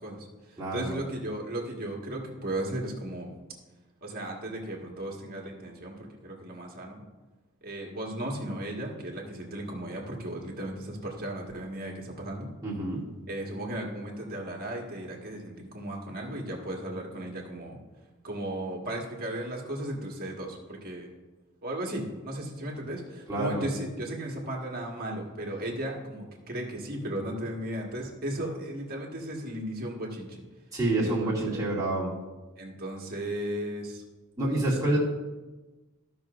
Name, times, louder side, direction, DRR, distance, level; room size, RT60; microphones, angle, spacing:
voice 1, 0.0-3.3 4.0-7.0 7.6-12.5 13.3-17.8 18.2-21.1 21.6-30.4 31.0-31.8 32.6-34.0 34.8-35.0, right 1 dB, 45° right, -1 dB, 1.7 m, -36 dB
voice 2, 0.6-1.0 12.6-13.0 23.3-23.6 30.7-32.1 34.4-35.0, right 2 dB, 15° right, -7 dB, 2.4 m, -27 dB
15.0 x 5.9 x 2.6 m, 1.2 s
head